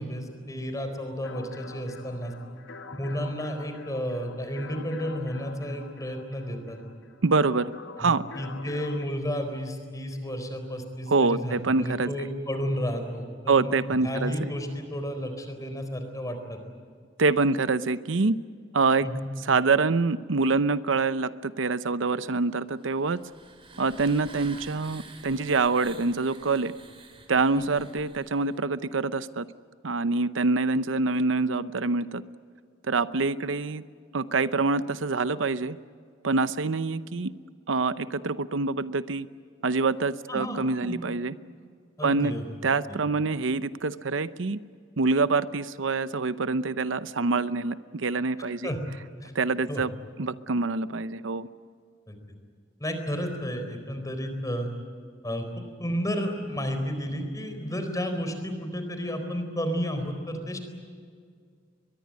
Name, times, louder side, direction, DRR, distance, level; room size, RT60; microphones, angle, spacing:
voice 1, 0.0-2.3 2.9-6.8 8.0-16.6 19.0-19.3 27.6-27.7 40.3-41.1 42.0-42.4 42.9-43.0 48.6-48.8 49.2-49.3 49.7-49.8 52.1-52.2 52.8-54.7 55.2-55.4 55.8-60.6, equal, 20° left, 7 dB, 4.2 m, -32 dB
sound 1, 1.2-9.0, left 3 dB, 75° left, 1.4 m, -45 dB
voice 2, 7.2-7.7 8.0-8.2 11.1-12.3 13.5-14.5 17.2-18.4 18.7-19.1 19.4-23.2 23.8-26.7 27.3-29.5 29.8-32.2 32.9-33.8 34.1-35.8 36.2-37.3 37.7-39.3 39.6-41.3 42.0-42.3 42.6-44.6 45.0-48.7 49.3-49.9 50.2-51.5, right 3 dB, 80° right, 14 dB, 0.7 m, -25 dB
sound 2, 22.8-28.6, right 3 dB, 30° right, 3.4 m, -48 dB
23.0 x 22.0 x 9.6 m, 2.1 s
head